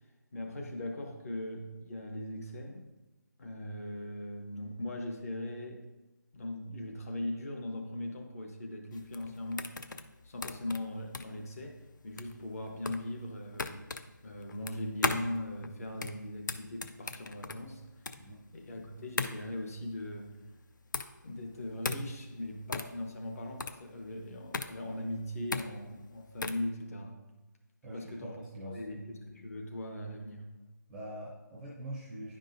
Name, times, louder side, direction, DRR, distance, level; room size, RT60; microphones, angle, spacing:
voice 1, 0.3-2.8 3.4-5.8 6.3-11.8 12.0-13.9 14.2-17.8 18.5-20.3 21.2-27.2 27.9-28.4 28.7-30.5, left 1 dB, 45° left, 2 dB, 1.2 m, -39 dB
sound 1, 8.9-26.7, left 4 dB, 70° left, 0.5 m, -38 dB
voice 2, 27.8-29.0 30.9-32.4, right 1 dB, 5° right, -5 dB, 0.5 m, -44 dB
10.0 x 5.3 x 2.6 m, 1.1 s
figure-of-eight pair, 165°, 11 cm